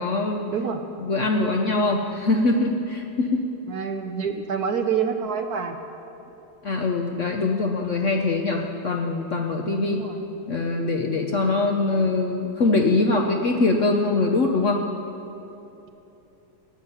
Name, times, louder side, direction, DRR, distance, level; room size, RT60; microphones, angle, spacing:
voice 1, 0.0-0.5 1.0-3.4 6.6-10.0 10.5-14.9, left 3 dB, 55° left, 2 dB, 0.8 m, -23 dB
voice 2, 0.5-0.8 3.7-5.8 9.8-10.2, right 6 dB, 65° right, 6 dB, 1.0 m, -27 dB
15.0 x 7.4 x 9.7 m, 2.9 s
omnidirectional pair, 2.1 m